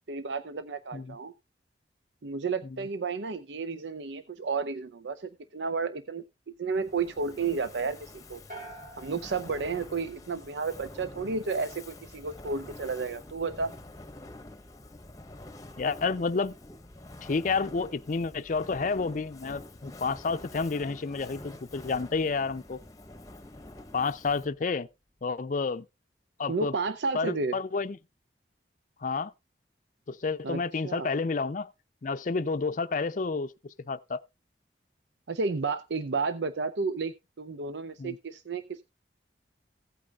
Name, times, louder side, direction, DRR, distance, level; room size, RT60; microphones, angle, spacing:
voice 1, 0.1-1.3 2.2-8.4 9.0-13.7 26.5-27.6 30.4-31.1 35.3-38.8, right 4 dB, 80° right, 0.6 m, -32 dB
Fire, 6.7-24.7, left 2 dB, 20° left, 0.9 m, -47 dB
sound 1, 8.5-10.8, right 1 dB, 50° right, 3.8 m, -47 dB
voice 2, 15.8-16.5 17.2-22.8 23.9-24.9 25.2-25.9 26.4-26.7 27.1-28.0 29.0-29.3 30.1-31.7 32.0-34.2 38.0-38.2, left 4 dB, 45° left, 0.5 m, -30 dB
16.0 x 8.6 x 2.4 m
head